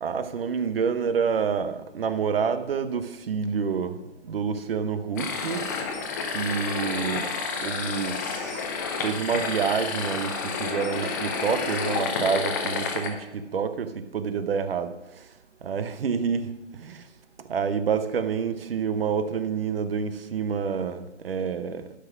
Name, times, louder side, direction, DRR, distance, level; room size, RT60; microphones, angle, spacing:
voice 1, 0.0-4.0 4.2-5.6 6.3-7.3 7.6-8.7 9.0-15.2 15.6-17.1 17.5-21.9, right 6 dB, 50° right, 11 dB, 0.9 m, -28 dB
sound 1, 5.2-13.1, left 5 dB, 15° left, 0.6 m, -30 dB
11.5 x 6.0 x 6.0 m, 0.99 s
hypercardioid pair, 155°, 36 cm